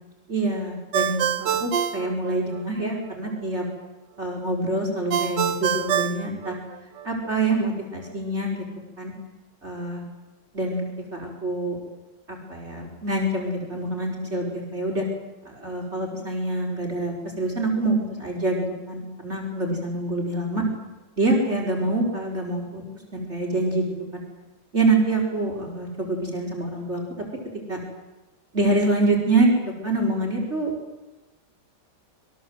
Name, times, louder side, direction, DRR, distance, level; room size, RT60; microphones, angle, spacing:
voice 1, 0.3-3.6 4.2-6.6 7.0-8.6 9.0-9.1 9.6-10.0 10.5-11.8 12.3-15.0 15.4-20.6 21.2-22.8 23.1-23.8 24.1-24.2 24.7-27.0 27.7-27.8 28.5-29.5 29.8-30.7, right 2 dB, 35° right, 1 dB, 5.0 m, -25 dB
Ringtone, 0.9-2.9 5.1-7.1, right 9 dB, 70° right, 1.7 m, -26 dB
26.5 x 22.5 x 8.0 m, 1.1 s
omnidirectional pair, 2.0 m